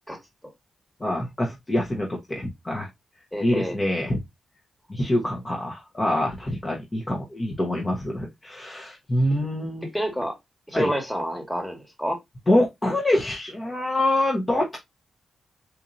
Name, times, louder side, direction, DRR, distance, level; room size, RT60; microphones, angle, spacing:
voice 1, 1.0-2.9 3.4-4.2 4.9-9.9 10.7-10.9 12.5-14.8, left 1 dB, 25° left, 0.9 m, -25 dB
voice 2, 3.3-3.8 9.9-10.3 10.7-12.2, equal, ahead, 1.4 m, -28 dB
4.2 x 2.7 x 2.5 m
cardioid pair, 75°, 0 cm